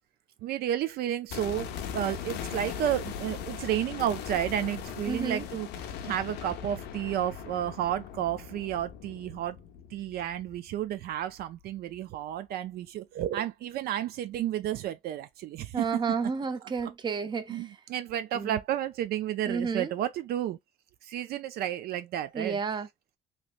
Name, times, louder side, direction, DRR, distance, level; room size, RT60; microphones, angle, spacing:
voice 1, 0.4-5.7 6.0-9.6 9.9-15.9 16.8-16.9 17.5-20.6 21.0-22.6, right 11 dB, 65° right, 0.4 m, -32 dB
sound 1, 1.3-11.3 11.6-11.7, left 8 dB, 90° left, 0.6 m, -39 dB
voice 2, 5.1-5.5 15.7-17.7 18.3-18.6 19.5-19.9 22.3-22.9, right 5 dB, 25° right, 0.6 m, -31 dB
3.2 x 2.9 x 2.4 m
cardioid pair, 110°, 17 cm